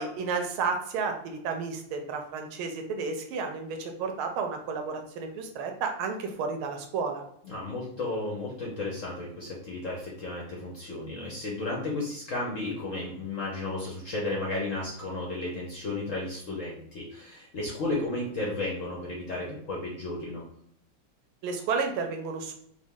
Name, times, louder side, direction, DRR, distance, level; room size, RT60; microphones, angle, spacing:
voice 1, 0.0-7.2 21.4-22.5, right 5 dB, 90° right, 4 dB, 1.6 m, -32 dB
voice 2, 7.4-20.4, left 2 dB, 55° left, -3 dB, 0.9 m, -33 dB
5.0 x 2.3 x 3.5 m, 0.71 s
omnidirectional pair, 2.3 m